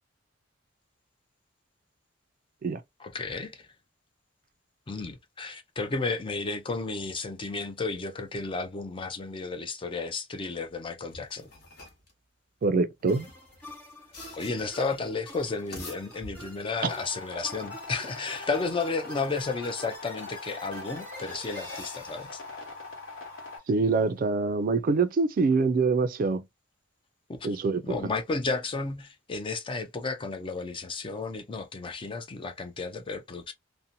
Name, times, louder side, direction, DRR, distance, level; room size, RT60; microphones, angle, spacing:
voice 1, 3.0-3.7 4.9-11.4 14.3-22.4 27.3-27.5 27.8-33.5, left 3 dB, 25° left, 0.4 m, -33 dB
sound 1, 11.1-12.1 13.0-14.8 15.5-16.8, left 2 dB, 50° left, 1.0 m, -46 dB
voice 2, 12.6-13.3 16.8-16.9 23.7-26.4 27.4-27.9, right 4 dB, 45° right, 0.3 m, -25 dB
sound 2, 13.1-23.5, equal, 10° left, 1.0 m, -47 dB
sound 3, 16.8-23.6, left 3 dB, 75° left, 1.1 m, -42 dB
2.6 x 2.1 x 2.6 m
head